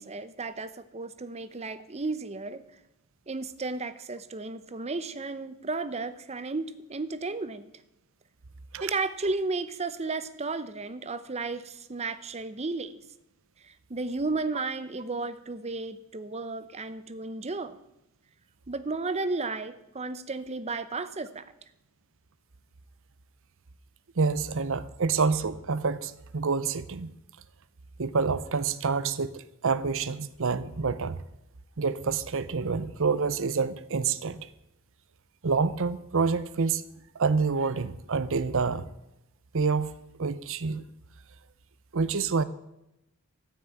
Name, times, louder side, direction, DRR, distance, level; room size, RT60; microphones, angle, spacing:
voice 1, 0.0-2.6 3.3-7.7 8.8-13.0 13.6-17.8 18.7-21.5, right 3 dB, 30° right, 13 dB, 0.7 m, -33 dB
voice 2, 24.2-27.1 28.0-31.2 31.8-34.5 35.4-36.8 37.2-38.8 39.5-39.9 40.2-40.8 41.9-42.4, right 4 dB, 60° right, 15 dB, 0.7 m, -27 dB
13.5 x 6.2 x 8.8 m, 0.87 s
head